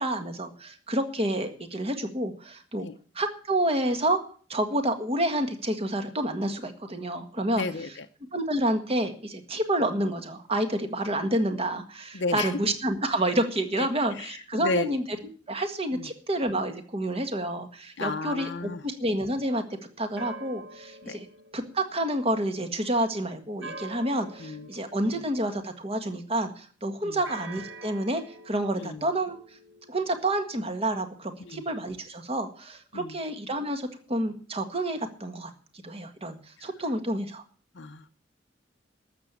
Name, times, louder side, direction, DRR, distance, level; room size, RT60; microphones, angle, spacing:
voice 1, 0.0-2.9 3.2-4.2 4.5-7.6 8.3-15.0 15.5-19.6 20.0-21.3 21.5-29.4 29.9-35.5 35.8-37.4, right 1 dB, 30° right, 7 dB, 1.7 m, -29 dB
voice 2, 7.5-8.1 12.1-12.6 13.8-14.9 15.9-16.1 18.0-18.8 21.0-21.2 24.4-24.7 25.0-25.2 27.0-27.2 28.7-29.0 31.4-31.6 32.9-33.2 36.6-36.7 37.7-38.1, left 3 dB, 65° left, 5 dB, 0.7 m, -33 dB
sound 1, 19.7-22.5 23.6-26.0 27.2-31.8, right 2 dB, 80° right, 2.1 m, -47 dB
13.0 x 7.3 x 8.3 m, 0.43 s
head